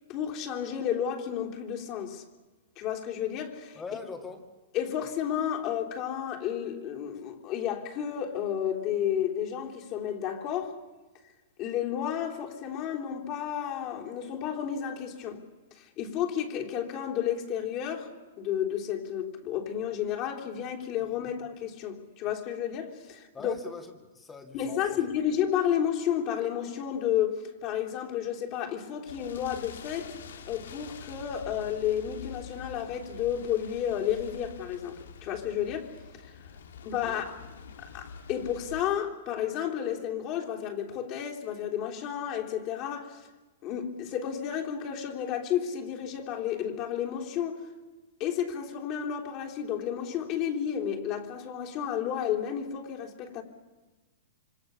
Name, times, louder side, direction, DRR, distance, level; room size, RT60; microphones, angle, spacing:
voice 1, 0.1-2.2 2.8-3.8 4.7-10.8 11.6-15.4 15.8-18.1 18.4-23.5 24.5-30.2 30.4-35.9 36.2-36.3 36.8-37.4 37.8-43.3 43.6-47.6 48.2-53.4, left 9 dB, 30° left, 3.5 m, -32 dB
voice 2, 3.8-4.4 21.2-21.3 23.3-25.0 37.0-37.2, left 4 dB, 10° left, 2.3 m, -42 dB
sound 1, 29.1-38.8, left 6 dB, 85° left, 2.6 m, -46 dB
26.5 x 25.0 x 7.1 m
hypercardioid pair, 160°, 0 cm